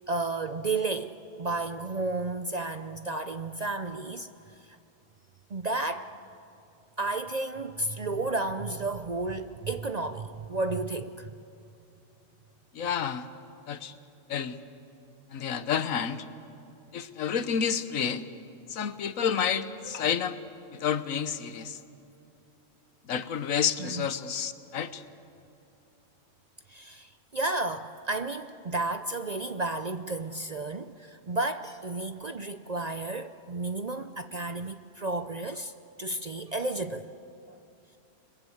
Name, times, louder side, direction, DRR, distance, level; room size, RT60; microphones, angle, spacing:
voice 1, 0.1-4.3 5.5-6.1 7.0-11.3 23.8-24.1 26.7-35.7 36.0-37.0, right 2 dB, 45° right, 9 dB, 0.6 m, -32 dB
voice 2, 12.7-13.2 13.7-13.9 14.3-14.6 15.3-16.2 16.9-18.2 18.7-20.4 20.7-21.8 23.1-25.0, left 7 dB, 85° left, 12 dB, 1.4 m, -29 dB
29.0 x 21.5 x 8.0 m, 2.7 s
omnidirectional pair, 1.4 m